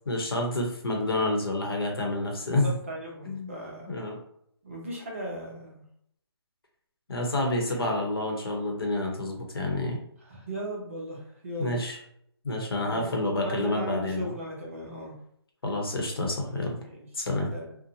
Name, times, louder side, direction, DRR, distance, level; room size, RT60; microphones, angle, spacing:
voice 1, 0.1-2.7 3.2-3.5 3.9-4.2 7.1-10.0 11.6-12.0 12.4-14.3 15.6-16.8 17.1-17.5, left 2 dB, 60° left, 1 dB, 0.9 m, -28 dB
voice 2, 2.6-3.9 4.6-5.8 7.6-8.0 10.2-11.8 12.9-13.1 13.4-15.1 16.8-17.0 17.5-17.8, right 1 dB, 30° right, -2 dB, 0.6 m, -37 dB
2.6 x 2.1 x 2.7 m, 0.71 s
hypercardioid pair, 170°, 14 cm